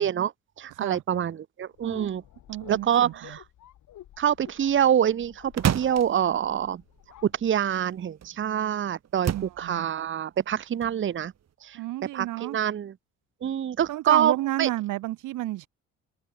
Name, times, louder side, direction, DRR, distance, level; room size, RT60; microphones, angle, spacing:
voice 1, 0.0-2.2 2.7-3.4 4.2-6.8 7.2-11.3 11.6-11.8 12.1-12.9 13.4-14.3 14.6-14.7, right 9 dB, 40° right, 0.8 m, -26 dB
sound 1, 1.7-8.0, left 12 dB, 75° left, 4.2 m, -50 dB
voice 2, 2.5-3.1 9.3-9.9 11.7-12.6 13.9-15.7, right 16 dB, 85° right, 1.4 m, -31 dB
sound 2, 5.2-7.8 8.2-8.7 9.0-10.1 10.4-11.5, right 9 dB, 60° right, 3.0 m, -31 dB
cardioid pair, 90°, 30 cm